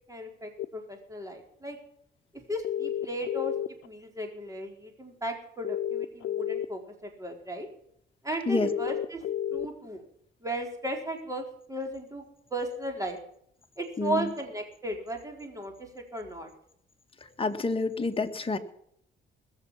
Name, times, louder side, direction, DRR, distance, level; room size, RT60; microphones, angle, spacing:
voice 1, 0.1-1.8 2.5-3.5 3.8-7.7 8.2-9.2 9.5-10.0 10.4-12.2 12.5-13.2 13.8-16.5, right 1 dB, 15° right, 3 dB, 4.3 m, -35 dB
Phone call outgoing, 0.6-0.7 2.6-3.9 5.6-6.7 8.6-9.7, left 10 dB, 70° left, 0.9 m, -31 dB
voice 2, 14.0-14.3 17.4-18.6, left 3 dB, 25° left, 6 dB, 1.7 m, -28 dB
21.0 x 7.1 x 7.4 m, 0.70 s
cardioid pair, 90°, 20 cm